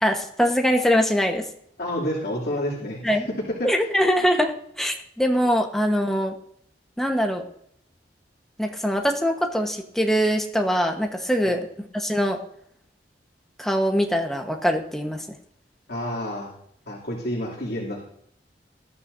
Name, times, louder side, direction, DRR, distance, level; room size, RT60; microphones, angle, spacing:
voice 1, 0.0-1.4 3.0-3.3 3.6-4.5 4.8-6.3 7.0-7.4 8.6-12.4 13.6-15.2, equal, ahead, 2 dB, 1.2 m, -23 dB
voice 2, 1.8-3.9 11.4-11.5 15.9-16.5 16.9-18.0, equal, 60° left, -5 dB, 2.9 m, -29 dB
19.5 x 13.5 x 2.7 m, 0.71 s
head